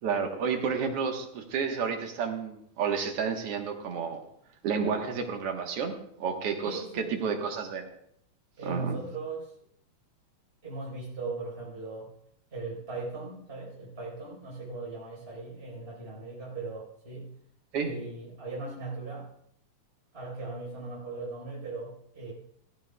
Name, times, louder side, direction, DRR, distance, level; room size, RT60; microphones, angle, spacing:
voice 1, 0.0-4.2 4.6-7.9 8.7-9.0 17.7-17.9, right 6 dB, 55° right, 3 dB, 2.0 m, -31 dB
voice 2, 6.6-7.3 8.6-9.5 10.6-12.1 12.5-17.3 17.8-19.3 20.1-22.3, right 3 dB, 20° right, -5 dB, 4.4 m, -38 dB
16.0 x 15.0 x 2.3 m, 0.72 s
omnidirectional pair, 3.5 m